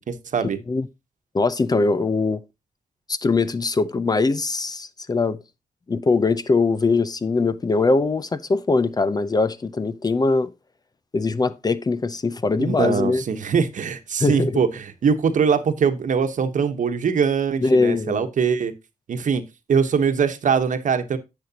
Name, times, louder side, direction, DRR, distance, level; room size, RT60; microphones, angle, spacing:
voice 1, 0.1-0.6 12.6-18.7 19.1-19.4 19.7-21.2, right 6 dB, 65° right, 1.1 m, -22 dB
voice 2, 1.3-2.4 3.1-5.4 5.9-10.5 11.1-13.2 14.2-14.6 17.6-18.3, left 3 dB, 30° left, 0.6 m, -21 dB
10.5 x 7.9 x 2.9 m
wide cardioid pair, 110°, 14 cm